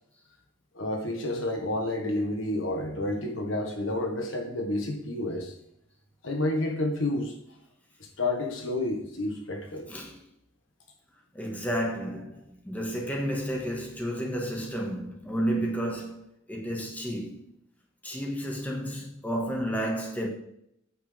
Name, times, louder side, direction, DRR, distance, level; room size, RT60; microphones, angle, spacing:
voice 1, 0.8-5.5 6.2-7.3 8.0-9.9, left 1 dB, 70° left, 1.6 m, -30 dB
voice 2, 9.9-10.2 11.3-17.4 18.0-20.3, equal, 10° left, 1.6 m, -31 dB
9.0 x 8.3 x 3.5 m
head